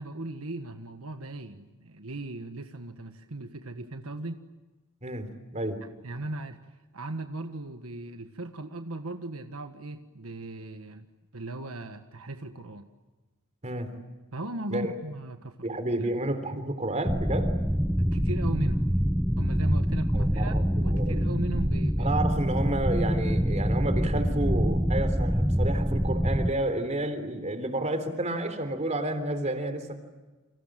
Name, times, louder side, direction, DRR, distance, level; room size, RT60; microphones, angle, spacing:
voice 1, 0.0-4.4 6.0-6.6 6.9-11.1 11.3-12.9 14.3-15.6 18.0-18.9 19.4-20.6 20.8-22.1, right 2 dB, 75° right, 7 dB, 1.5 m, -38 dB
voice 2, 5.0-5.8 13.6-13.9 14.7-14.9 15.6-17.6 20.1-21.3 22.0-30.0, right 1 dB, 35° right, 8 dB, 3.5 m, -30 dB
sound 1, 17.0-26.5, equal, 5° right, 0.8 m, -25 dB
29.5 x 26.0 x 7.6 m, 1.2 s
head